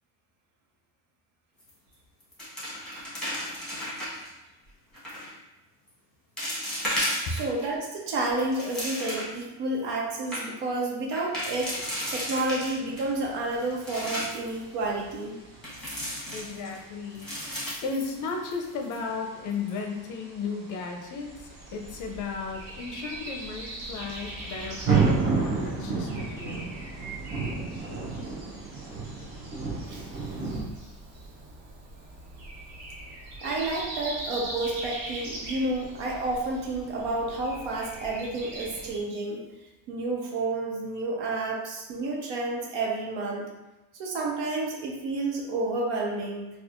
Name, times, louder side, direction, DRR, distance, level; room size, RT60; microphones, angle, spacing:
sound 1, 1.6-1.9 2.2-4.3 4.9-5.3 5.9-6.0 6.4-7.7 8.1-9.4 9.8-9.9 10.1-10.4 11.1-13.0 13.5-14.5 15.6-16.8 17.1-18.6 18.9-19.0 19.5-19.8, equal, ahead, 1.1 m, -34 dB
voice 1, 7.3-11.8 12.1-15.4 29.9-30.1 33.4-39.4 39.9-43.5 43.9-46.5, right 2 dB, 90° right, -1 dB, 1.0 m, -30 dB
sound 2, 11.3-30.6, right 4 dB, 25° right, 0.6 m, -34 dB
voice 2, 16.3-17.3 17.8-26.7, left 4 dB, 45° left, 2 dB, 0.5 m, -35 dB
Breathing, 21.2-39.0, right 1 dB, 65° right, 1.2 m, -41 dB
4.3 x 2.3 x 2.5 m, 1.0 s
cardioid pair, 160°, 44 cm